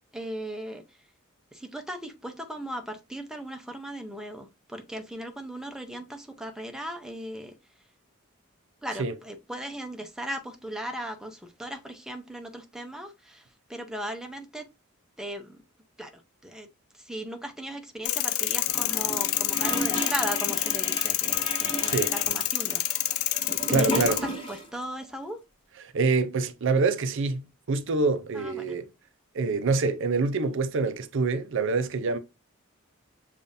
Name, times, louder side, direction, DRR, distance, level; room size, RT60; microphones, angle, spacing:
voice 1, 0.1-0.8 1.5-7.5 8.8-13.4 13.7-14.6 15.2-15.6 16.0-16.1 16.4-16.7 17.0-22.8 23.3-23.4 23.8-25.4 28.3-28.7, right 1 dB, 5° right, 0.7 m, -37 dB
sound 1, 18.1-24.2, left 14 dB, 75° left, 0.4 m, -28 dB
Gurgling / Toilet flush, 18.7-24.8 25.0-25.1, equal, 25° left, 1.3 m, -34 dB
voice 2, 23.7-24.2 25.8-28.9 29.3-32.2, right 4 dB, 60° right, 0.5 m, -26 dB
6.8 x 2.5 x 2.6 m
head